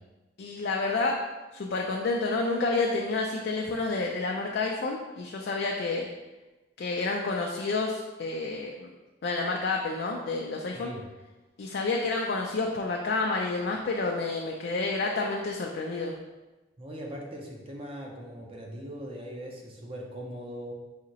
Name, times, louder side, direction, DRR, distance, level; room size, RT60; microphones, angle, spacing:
voice 1, 0.4-1.2 1.5-6.1 6.8-8.9 9.2-10.9 11.6-16.1, left 3 dB, 60° left, 0 dB, 0.4 m, -29 dB
voice 2, 16.8-20.7, equal, 30° right, 0 dB, 0.6 m, -40 dB
4.9 x 2.8 x 2.8 m, 1.1 s
head